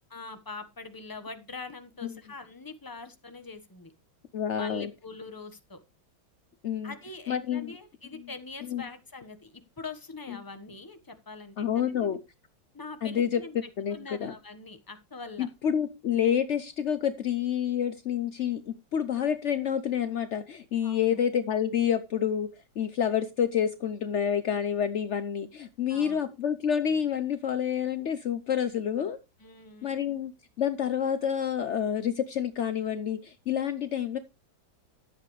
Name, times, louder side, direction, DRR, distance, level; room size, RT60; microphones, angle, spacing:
voice 1, 0.1-3.9 4.5-5.8 6.8-9.5 9.8-12.2 12.7-15.5 20.8-21.2 25.9-26.3 29.4-29.9, left 3 dB, 15° left, 8 dB, 1.1 m, -43 dB
voice 2, 4.3-4.9 6.6-6.9 7.3-7.7 8.7-8.8 11.6-12.2 13.0-13.4 13.8-14.0 14.2-14.3 15.4-22.5 22.8-29.2 29.8-30.3 30.6-34.2, left 8 dB, 75° left, 11 dB, 0.6 m, -28 dB
13.5 x 8.0 x 3.2 m, 0.27 s
omnidirectional pair, 2.2 m